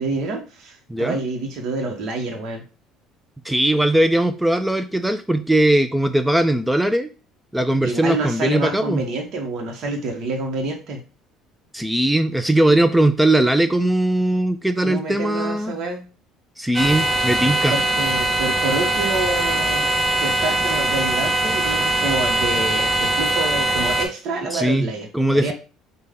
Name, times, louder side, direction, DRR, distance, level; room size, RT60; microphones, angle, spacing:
voice 1, 0.0-2.6 7.8-11.0 14.8-16.1 17.7-19.9 20.2-25.1 25.3-25.5, right 3 dB, 60° right, 1 dB, 1.0 m, -27 dB
voice 2, 3.4-7.1 7.5-9.0 11.7-15.7 16.6-17.7 24.5-24.9 25.1-25.5, right 1 dB, 5° right, 10 dB, 0.3 m, -19 dB
sound 1, 16.7-24.1, right 1 dB, 35° right, 1.1 m, -21 dB
5.2 x 2.2 x 3.5 m, 0.33 s
supercardioid pair, 90°, 0 cm